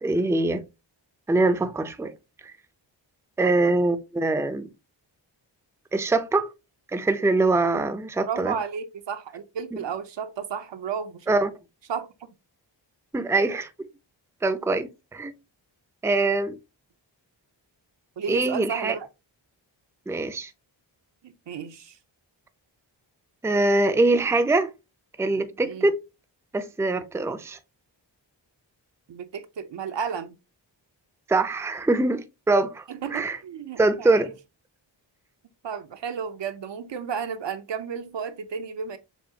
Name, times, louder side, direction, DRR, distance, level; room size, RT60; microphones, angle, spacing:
voice 1, 0.0-0.6 1.3-2.1 3.4-4.7 5.9-6.5 6.9-8.5 11.3-11.5 13.1-13.7 14.4-15.3 16.0-16.6 18.3-19.0 20.1-20.5 23.4-24.7 25.2-26.0 26.5-27.6 31.3-32.8 33.1-33.4 33.8-34.3, right 2 dB, 5° right, 0.5 m, -23 dB
voice 2, 8.3-11.3 11.9-12.3 18.2-19.1 21.2-22.0 25.6-25.9 29.1-30.4 32.9-34.3 35.6-39.0, right 7 dB, 70° right, 0.7 m, -33 dB
6.9 x 2.4 x 2.8 m
cardioid pair, 70°, 45 cm